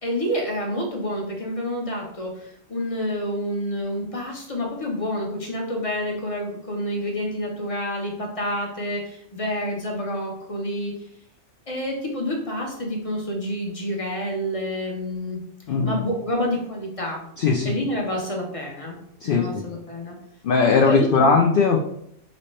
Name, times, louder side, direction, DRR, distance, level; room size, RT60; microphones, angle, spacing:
voice 1, 0.0-10.9 11.7-15.4 15.8-17.2 17.6-19.0 19.2-20.2 20.9-21.3, equal, 30° left, -1 dB, 0.8 m, -28 dB
voice 2, 17.4-17.7 19.2-19.6 20.4-21.8, left 4 dB, 65° left, 2 dB, 0.5 m, -19 dB
5.2 x 2.7 x 3.2 m, 0.72 s
omnidirectional pair, 1.4 m